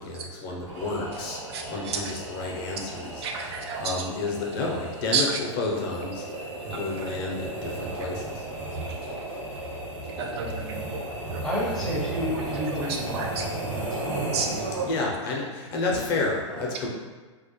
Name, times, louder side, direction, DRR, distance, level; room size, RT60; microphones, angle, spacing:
voice 1, 0.0-1.4 1.7-3.2 3.8-6.2 6.7-8.4 14.8-16.9, left 3 dB, 45° left, -1 dB, 0.6 m, -30 dB
sound 1, 0.6-15.2, right 2 dB, 80° right, 0.9 m, -35 dB
voice 2, 1.5-2.2 2.8-2.9 3.2-4.1 5.1-5.4 6.4-7.2 7.9-8.1 8.7-9.6 10.1-11.4 12.3-12.4 12.8-13.5 14.1-15.0 16.7-16.8, right 5 dB, 55° right, 2 dB, 0.4 m, -33 dB
voice 3, 11.4-14.4 14.7-14.9 15.9-16.9, left 1 dB, 5° left, -7 dB, 0.6 m, -33 dB
2.3 x 2.0 x 2.9 m, 1.4 s
hypercardioid pair, 130°, 16 cm